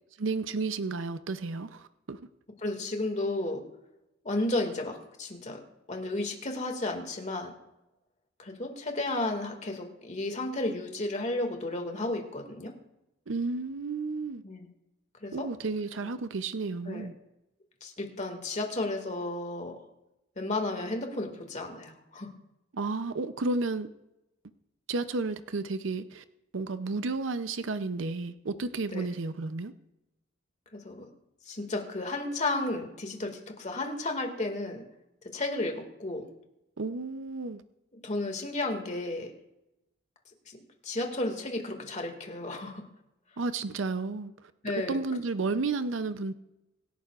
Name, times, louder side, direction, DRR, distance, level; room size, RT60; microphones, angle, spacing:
voice 1, 0.2-2.2 13.3-14.4 15.3-17.1 22.7-23.9 24.9-26.2 26.5-29.7 36.8-37.6 43.4-44.5 44.9-46.3, right 3 dB, 80° right, 11 dB, 0.6 m, -32 dB
voice 2, 2.6-3.6 4.2-5.6 5.9-7.5 8.4-12.7 14.4-14.7 15.2-15.5 16.9-17.1 17.8-19.8 20.4-22.3 28.9-29.1 30.7-31.1 31.5-34.8 35.3-36.3 38.0-39.3 40.5-40.6 40.8-42.8 44.6-45.0, left 2 dB, 40° left, 3 dB, 2.1 m, -33 dB
25.0 x 11.0 x 2.5 m, 0.91 s
head